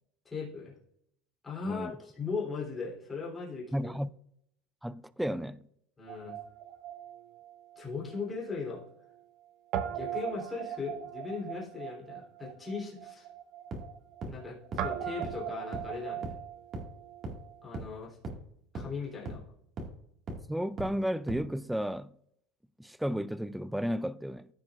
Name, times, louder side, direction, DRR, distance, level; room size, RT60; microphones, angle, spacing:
voice 1, 0.2-0.7 1.4-3.9 6.0-6.4 7.7-8.8 9.9-13.3 14.2-16.3 17.6-18.2 18.7-19.4, left 4 dB, 15° left, 3.3 m, -38 dB
voice 2, 3.7-4.1 4.8-5.6 20.5-22.1 22.8-24.5, equal, ahead, 0.3 m, -33 dB
Guitar, 6.1-8.5 8.7-8.9 9.7-17.6, right 10 dB, 55° right, 0.9 m, -39 dB
sound 1, 13.7-13.8 14.2-14.3 14.7-14.8 15.2-15.3 15.7-15.8 16.2-16.3 16.7-16.8 17.2-17.3 17.7-17.8 18.2-18.3 18.7-18.8 19.3-19.4 19.8-19.9 20.3-20.4 20.8-20.9 21.3-21.4, right 3 dB, 35° right, 1.9 m, -37 dB
14.5 x 5.9 x 2.5 m
supercardioid pair, 140°, 0 cm